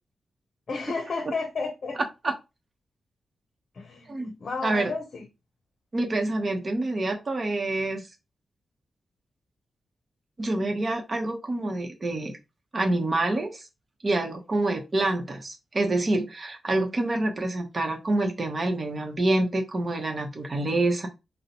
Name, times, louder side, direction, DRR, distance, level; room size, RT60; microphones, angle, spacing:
voice 1, 0.7-2.0 3.7-5.3, left 4 dB, 55° left, 0.6 m, -32 dB
voice 2, 5.9-8.0 10.4-12.3 12.7-13.6 14.0-21.1, right 2 dB, 40° right, 0.9 m, -27 dB
3.7 x 2.1 x 2.9 m
cardioid pair, 75°, 0 cm